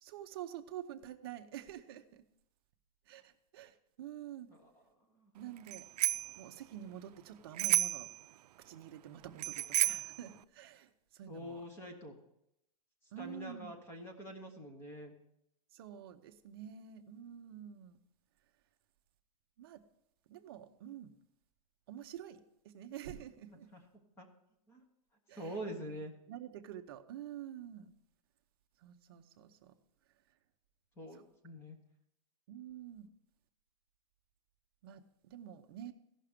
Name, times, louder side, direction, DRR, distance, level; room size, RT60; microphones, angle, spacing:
voice 1, 0.0-2.2 3.1-4.5 5.3-5.9 6.4-8.1 8.6-11.6 13.1-13.8 15.7-18.0 19.6-19.8 20.3-21.1 21.9-23.7 25.3-26.0 26.3-27.9 28.8-29.7 31.1-31.2 31.6-31.7 32.5-33.1 34.8-35.9, right 10 dB, 35° right, 7 dB, 0.7 m, -48 dB
Bicycle bell, 5.7-6.4 7.6-8.1 9.4-10.2, right 13 dB, 75° right, 0.4 m, -31 dB
voice 2, 11.3-12.2 13.2-15.1 23.7-23.8 24.2-24.3 24.7-24.8 25.3-26.1 31.0-31.8, equal, 10° left, 4 dB, 1.0 m, -45 dB
15.5 x 5.9 x 5.0 m, 0.81 s
supercardioid pair, 175°, 20 cm